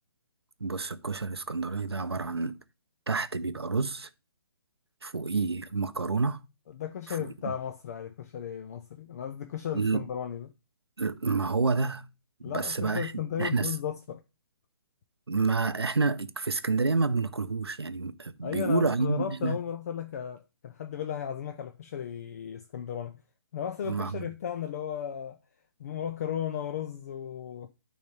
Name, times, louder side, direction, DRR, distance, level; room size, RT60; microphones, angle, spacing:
voice 1, 0.6-2.6 3.1-4.1 5.0-6.4 7.1-7.3 9.7-10.0 11.0-12.1 12.4-13.1 13.4-13.7 15.3-19.6 23.9-24.3, right 4 dB, 80° right, 0.6 m, -29 dB
voice 2, 6.7-10.5 12.4-14.2 18.4-23.2 23.5-25.4 25.8-27.7, left 9 dB, 40° left, 0.5 m, -35 dB
8.9 x 3.2 x 4.9 m
figure-of-eight pair, 135°, 13 cm